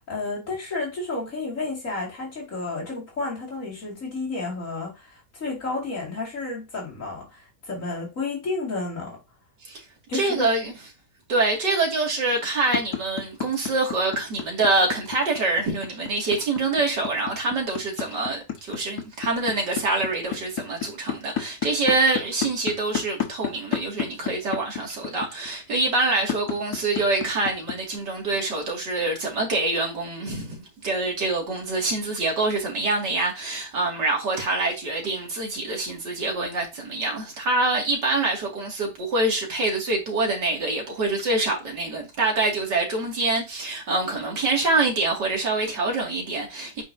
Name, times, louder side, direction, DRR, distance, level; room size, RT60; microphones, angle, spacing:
voice 1, 0.0-9.2 10.1-10.5, left 3 dB, 50° left, 2.8 m, -31 dB
voice 2, 10.1-10.7 11.3-46.8, right 2 dB, 80° right, 3.0 m, -25 dB
sound 1, 12.3-28.0, left 9 dB, 70° left, 1.7 m, -30 dB
8.5 x 5.0 x 2.7 m
omnidirectional pair, 1.8 m